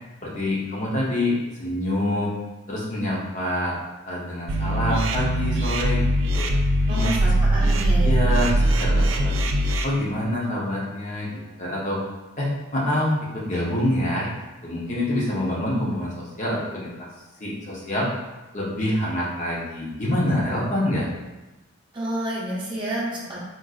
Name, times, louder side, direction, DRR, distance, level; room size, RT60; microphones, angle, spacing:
voice 1, 0.2-2.3 2.7-3.7 4.0-6.5 6.9-7.4 7.9-9.5 9.8-11.3 11.6-12.0 12.4-14.3 14.6-17.1 17.4-18.1 18.5-21.1, left 1 dB, 35° left, -5 dB, 0.7 m, -26 dB
sound 1, 4.5-9.8, right 1 dB, 65° right, 0.3 m, -21 dB
voice 2, 6.9-8.2 21.9-23.4, right 1 dB, 20° right, -7 dB, 0.7 m, -29 dB
3.9 x 2.5 x 2.4 m, 1.1 s
head